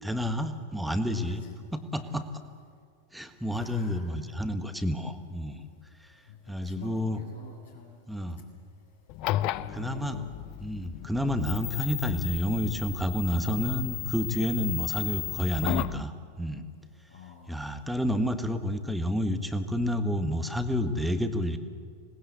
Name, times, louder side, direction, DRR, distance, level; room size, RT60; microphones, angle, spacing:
voice 1, 0.0-1.4 1.7-2.3 3.1-5.6 6.0-6.1 6.5-7.2 8.1-8.4 9.7-10.2 10.6-16.7 17.5-21.6, equal, ahead, 7 dB, 1.6 m, -30 dB
voice 2, 1.1-1.6 2.0-2.3 3.5-4.1 6.6-7.9 9.3-10.3 10.9-11.1 17.1-17.7, left 7 dB, 70° left, -3 dB, 4.7 m, -46 dB
sound 1, 9.1-16.0, left 16 dB, 40° left, 0.6 m, -34 dB
26.5 x 20.0 x 8.3 m, 2.1 s
figure-of-eight pair, 90°, 0 cm